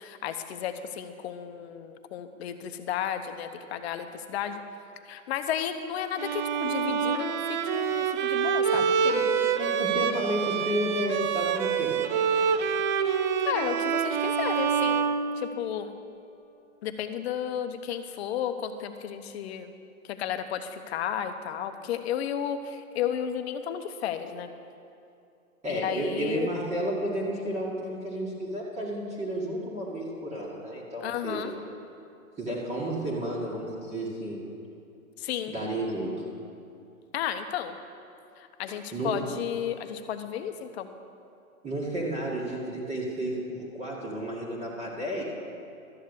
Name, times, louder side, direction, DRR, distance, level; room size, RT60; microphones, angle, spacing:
voice 1, 0.0-4.6 5.1-8.9 13.4-15.1 15.4-15.9 16.8-19.7 20.1-24.5 25.7-26.5 31.0-31.5 35.2-35.5 37.1-37.7 38.4-40.9, left 9 dB, 45° left, 9 dB, 1.0 m, -33 dB
Bowed string instrument, 6.2-15.9, right 6 dB, 35° right, 0.6 m, -27 dB
voice 2, 9.6-12.7 25.6-31.5 32.4-34.4 35.5-36.3 38.9-39.2 41.6-45.2, right 1 dB, 15° right, -5 dB, 2.0 m, -32 dB
12.5 x 7.4 x 8.1 m, 2.6 s
hypercardioid pair, 135°, 43 cm